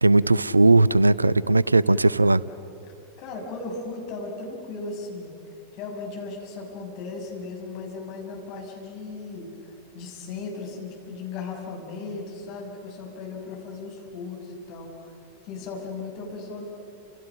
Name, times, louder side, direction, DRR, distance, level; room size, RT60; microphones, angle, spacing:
voice 1, 0.0-2.4, right 2 dB, 80° right, 20 dB, 0.5 m, -18 dB
voice 2, 3.2-5.3 5.7-9.5 9.9-15.1 15.4-16.7, left 3 dB, 45° left, 1 dB, 6.4 m, -36 dB
30.0 x 28.0 x 6.4 m, 2.7 s
figure-of-eight pair, 90°, 0 cm